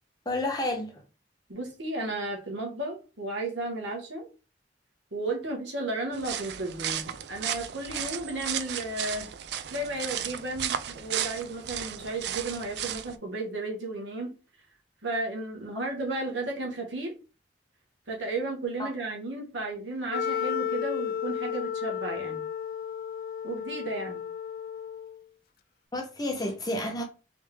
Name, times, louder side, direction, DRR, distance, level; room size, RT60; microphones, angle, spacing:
voice 1, 0.3-1.0 18.8-18.9 25.9-27.0, left 1 dB, 20° left, 0.7 m, -30 dB
voice 2, 1.5-4.3 5.1-9.3 9.7-14.3 15.0-17.1 18.1-22.5 23.4-24.2, right 2 dB, 80° right, 1.2 m, -34 dB
sound 1, 6.1-13.2, right 10 dB, 60° right, 0.4 m, -34 dB
Wind instrument woodwind instrument, 20.1-25.2, left 8 dB, 50° left, 0.3 m, -33 dB
3.5 x 3.2 x 3.3 m
head